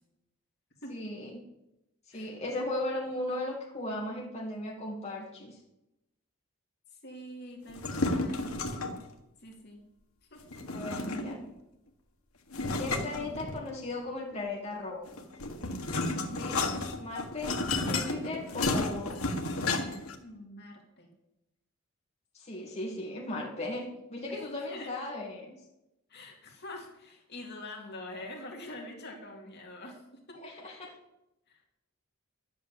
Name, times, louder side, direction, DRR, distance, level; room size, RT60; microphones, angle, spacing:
voice 1, 0.9-1.4 2.1-5.6 10.7-11.4 12.8-15.1 16.3-17.6 17.9-19.3 22.3-25.5 30.4-30.9, left 2 dB, 30° left, -2 dB, 2.2 m, -37 dB
voice 2, 6.9-8.5 9.4-9.9 10.3-10.5 20.2-21.1 24.3-24.9 26.1-30.4 31.5-31.6, left 1 dB, 50° left, 1 dB, 2.4 m, -45 dB
sound 1, 7.7-9.1 10.5-11.5 12.5-13.9 15.1-20.1, left 2 dB, 85° left, 1.6 m, -32 dB
11.5 x 8.3 x 7.9 m, 0.91 s
head